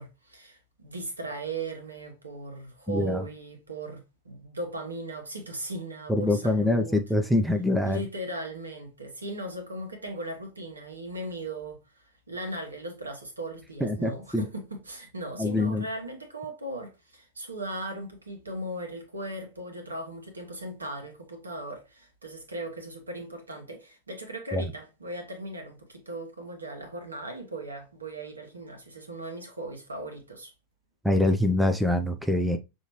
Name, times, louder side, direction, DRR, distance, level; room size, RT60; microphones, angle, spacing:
voice 1, 0.0-7.0 7.8-30.5, right 1 dB, 75° right, 1.2 m, -38 dB
voice 2, 2.9-3.2 6.1-8.0 13.8-14.4 15.4-15.8 24.5-24.6 31.0-32.6, left 1 dB, ahead, 0.5 m, -24 dB
6.4 x 2.8 x 3.0 m
figure-of-eight pair, 90°, 0 cm